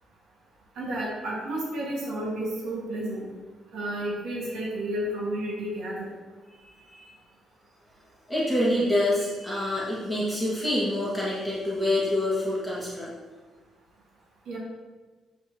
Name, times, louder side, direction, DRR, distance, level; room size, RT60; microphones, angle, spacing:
voice 1, 0.8-3.3 3.7-6.2 14.5-14.6, right 1 dB, 80° right, -5 dB, 1.8 m, -31 dB
voice 2, 6.5-7.1 8.3-13.1, left 1 dB, ahead, -8 dB, 2.0 m, -27 dB
8.1 x 4.6 x 3.0 m, 1.4 s
cardioid pair, 90°, 0 cm